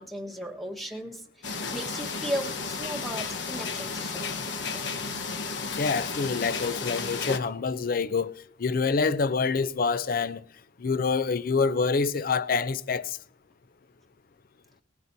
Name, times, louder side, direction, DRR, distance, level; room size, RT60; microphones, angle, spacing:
voice 1, 0.0-4.6, equal, ahead, 1.3 m, -36 dB
sound 1, 1.4-7.4, left 4 dB, 85° left, 1.1 m, -33 dB
voice 2, 5.8-8.3 8.6-10.4 10.8-13.2, left 4 dB, 55° left, 0.5 m, -26 dB
19.5 x 15.5 x 2.7 m
head